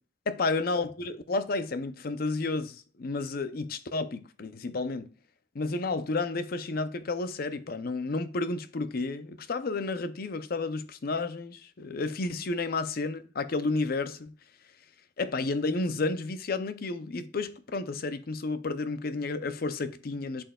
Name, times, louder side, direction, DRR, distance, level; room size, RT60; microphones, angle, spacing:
voice 1, 0.3-5.1 5.5-14.3 15.2-20.4, left 3 dB, 55° left, 0.6 m, -31 dB
11.0 x 4.4 x 2.3 m
head